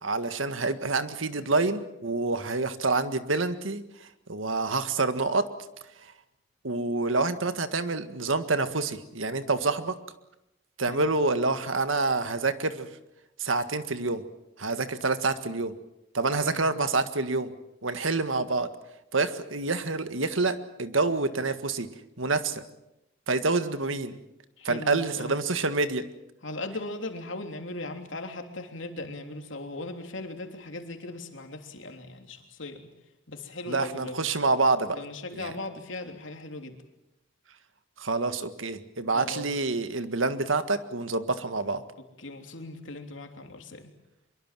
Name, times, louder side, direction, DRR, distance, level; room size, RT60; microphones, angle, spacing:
voice 1, 0.0-5.5 6.6-10.0 10.8-12.9 13.4-14.2 14.6-15.7 16.1-17.5 17.8-18.7 19.1-21.9 22.2-22.6 23.3-24.2 24.6-26.0 33.7-35.0 35.3-35.5 38.0-41.8, right 3 dB, 85° right, 10 dB, 1.8 m, -27 dB
voice 2, 24.6-25.3 26.4-32.9 33.3-34.2 34.9-36.8 39.1-39.5 42.2-43.9, left 2 dB, 70° left, 5 dB, 3.3 m, -38 dB
24.5 x 23.0 x 7.6 m, 0.89 s
head